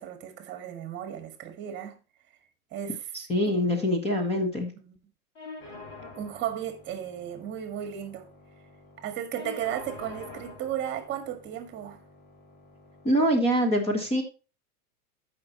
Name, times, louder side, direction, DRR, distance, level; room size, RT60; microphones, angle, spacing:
voice 1, 0.0-2.0 2.7-3.0 3.5-4.0 4.7-5.0 6.1-8.3 9.0-12.0, right 10 dB, 25° right, 1.7 m, -35 dB
voice 2, 3.3-4.7 13.0-14.2, equal, 15° left, 1.3 m, -24 dB
sound 1, 5.3-13.3, left 3 dB, 60° left, 4.2 m, -47 dB
15.5 x 5.7 x 2.9 m
supercardioid pair, 150°, 44 cm